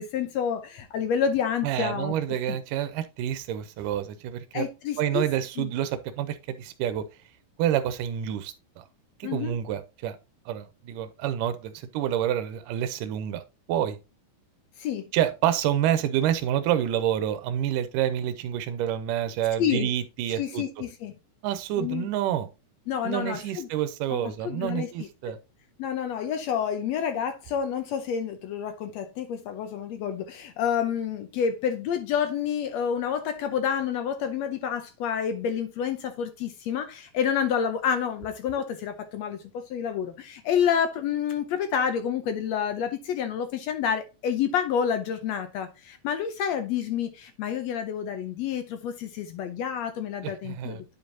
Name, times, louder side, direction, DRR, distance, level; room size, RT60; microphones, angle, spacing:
voice 1, 0.0-2.2 2.5-2.6 4.5-5.3 5.6-5.7 9.2-9.5 14.8-15.1 19.6-19.9 20.4-21.1 21.8-22.1 22.9-23.7 24.1-25.4 25.8-50.8, left 8 dB, 75° left, 1.7 m, -29 dB
voice 2, 1.6-4.7 5.0-7.0 7.6-8.8 9.2-10.2 10.5-13.4 13.7-14.0 15.1-20.6 21.4-22.5 23.0-25.4 50.2-50.8, right 11 dB, 90° right, 2.2 m, -28 dB
9.5 x 5.2 x 2.7 m
omnidirectional pair, 3.7 m